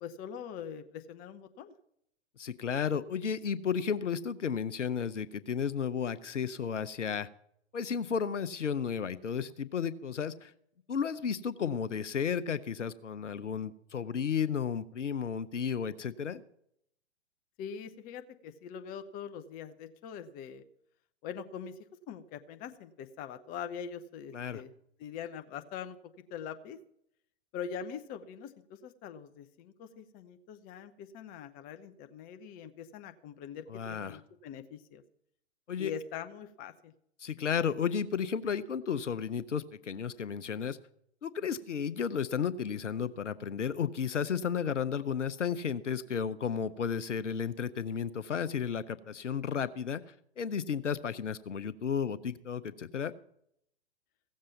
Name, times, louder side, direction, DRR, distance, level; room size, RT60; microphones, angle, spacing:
voice 1, 0.0-1.7 17.6-20.6 21.2-21.7 22.1-24.7 25.0-26.0 26.3-26.8 27.5-35.0 35.8-36.9, left 7 dB, 25° left, 9 dB, 0.7 m, -43 dB
voice 2, 2.4-7.3 7.7-10.5 10.9-16.4 24.3-24.6 33.7-34.2 35.7-35.9 37.2-40.8 41.2-50.0 50.4-53.1, left 7 dB, 80° left, 15 dB, 0.7 m, -33 dB
16.0 x 7.4 x 7.1 m, 0.73 s
figure-of-eight pair, 110°, 36 cm